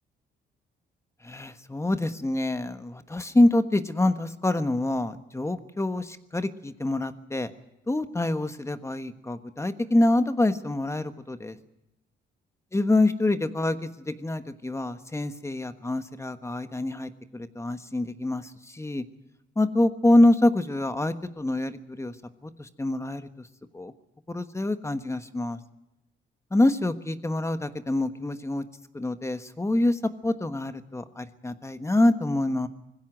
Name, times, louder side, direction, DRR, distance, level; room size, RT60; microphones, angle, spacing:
voice 1, 1.2-7.5 7.9-11.6 12.7-13.8 14.1-19.0 19.6-22.1 22.4-23.5 23.7-23.9 24.3-25.6 26.5-28.6 28.9-32.7, left 1 dB, 15° left, 9 dB, 1.3 m, -26 dB
20.0 x 16.0 x 9.1 m, 0.93 s
cardioid pair, 90°, 20 cm